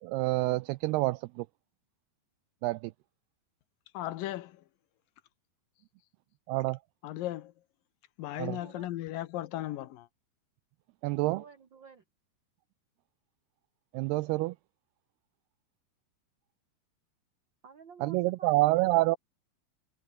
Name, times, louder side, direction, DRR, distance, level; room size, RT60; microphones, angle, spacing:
voice 1, 0.0-1.5 2.6-2.9 6.5-6.8 8.4-8.6 11.0-11.4 13.9-14.6 18.0-19.2, right 20 dB, 85° right, 2.3 m, -27 dB
voice 2, 3.9-4.6 7.0-7.5 8.2-10.1, left 14 dB, 75° left, 2.1 m, -36 dB
voice 3, 8.3-8.9 11.2-12.0 17.6-19.2, right 6 dB, 45° right, 1.6 m, -52 dB
omnidirectional pair, 5.2 m